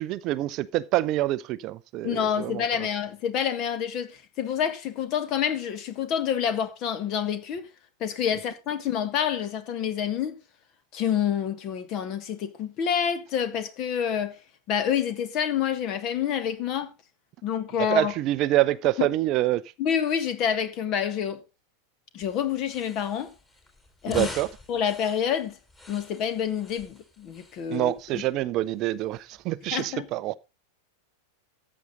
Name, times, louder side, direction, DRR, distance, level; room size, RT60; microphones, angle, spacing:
voice 1, 0.0-2.9 17.8-19.6 24.1-24.5 27.7-30.4, right 16 dB, 40° right, 0.5 m, -26 dB
voice 2, 2.0-7.7 8.0-10.3 10.9-14.4 14.7-16.9 17.4-18.1 19.0-19.1 19.8-21.4 22.1-23.3 24.0-24.3 24.7-25.6 25.9-28.2 29.7-30.1, left 8 dB, 40° left, 1.6 m, -28 dB
sound 1, 22.2-29.7, left 2 dB, 15° left, 4.0 m, -45 dB
14.0 x 8.3 x 4.0 m
figure-of-eight pair, 90°, 0 cm